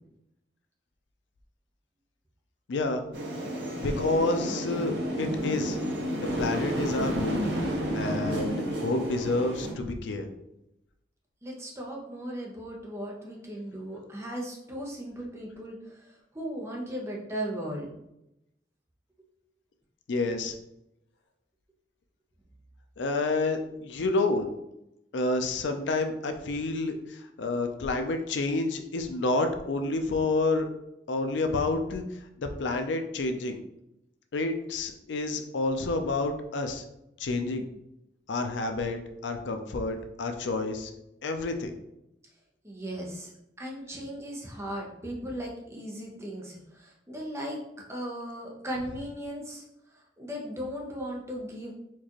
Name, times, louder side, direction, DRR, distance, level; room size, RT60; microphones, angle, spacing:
voice 1, 2.7-3.0 3.7-5.8 6.4-7.5 7.9-10.3 20.1-20.5 23.0-24.5 25.1-30.7 31.1-32.0 32.4-33.6 34.3-36.8 37.2-37.7 38.3-40.9 41.2-41.7, left 2 dB, 90° left, 6 dB, 0.5 m, -29 dB
sound 1, 3.1-9.7, equal, 70° right, 0.8 m, -31 dB
voice 2, 11.4-17.9 42.6-43.3 43.6-47.6 47.9-49.6 49.9-51.7, equal, 15° right, -2 dB, 0.7 m, -37 dB
4.5 x 2.4 x 3.0 m, 0.85 s
head